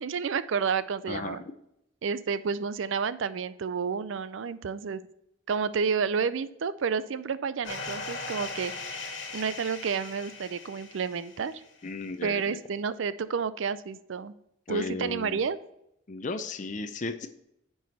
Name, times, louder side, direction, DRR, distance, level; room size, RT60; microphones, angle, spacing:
voice 1, 0.0-1.4 2.0-5.0 5.5-11.5 12.2-14.4 14.7-15.6, right 5 dB, 75° right, 15 dB, 0.4 m, -30 dB
voice 2, 1.1-1.4 11.8-12.6 14.7-15.4 16.1-17.3, left 3 dB, 40° left, 8 dB, 0.5 m, -35 dB
sound 1, 7.6-11.7, left 3 dB, 65° left, 1.7 m, -39 dB
9.2 x 4.8 x 4.2 m, 0.82 s
head